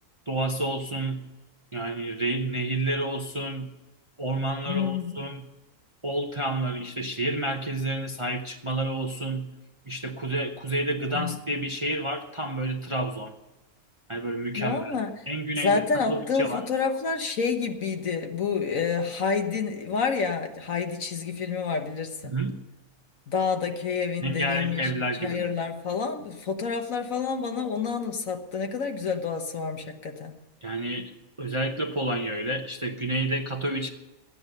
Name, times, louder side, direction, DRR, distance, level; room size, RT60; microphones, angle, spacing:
voice 1, 0.3-1.2 1.7-3.7 4.2-5.5 6.0-9.5 9.9-13.3 14.1-15.0 15.3-16.6 22.2-22.6 24.2-25.5 30.6-31.1 31.4-33.9, right 1 dB, 25° right, 3 dB, 0.8 m, -29 dB
voice 2, 4.6-5.1 11.1-11.4 14.6-15.1 15.6-22.4 23.3-24.8 25.2-30.3, left 5 dB, 60° left, 5 dB, 1.6 m, -28 dB
14.5 x 9.7 x 6.7 m, 1.1 s
omnidirectional pair, 1.6 m